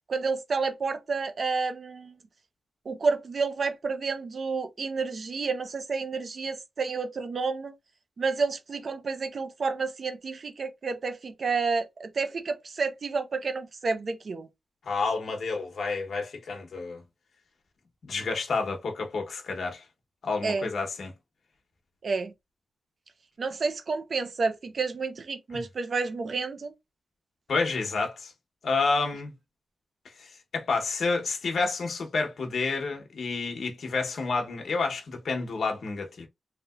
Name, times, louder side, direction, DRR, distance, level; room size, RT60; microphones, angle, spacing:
voice 1, 0.1-2.1 2.9-7.7 8.2-14.5 20.4-20.7 22.0-22.3 23.4-26.7, right 4 dB, 55° right, 0.6 m, -30 dB
voice 2, 14.8-17.0 18.1-19.8 20.2-21.1 27.5-28.3 28.6-29.3 30.2-36.3, left 4 dB, 75° left, 0.8 m, -29 dB
3.4 x 2.8 x 2.3 m
wide cardioid pair, 130°, 0 cm